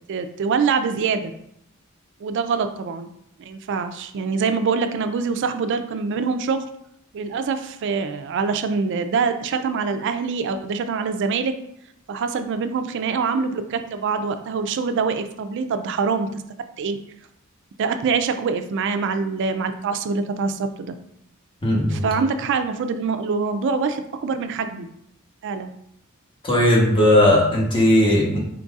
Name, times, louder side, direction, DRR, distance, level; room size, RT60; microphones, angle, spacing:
voice 1, 0.1-1.3 2.2-3.1 3.5-6.6 7.1-11.5 12.1-16.4 16.8-17.0 17.8-21.0 21.9-24.9 25.4-25.7, right 5 dB, 55° right, 8 dB, 0.3 m, -24 dB
voice 2, 21.6-22.0 26.4-28.4, left 1 dB, 25° left, -2 dB, 0.9 m, -17 dB
4.4 x 3.9 x 2.4 m, 0.74 s
head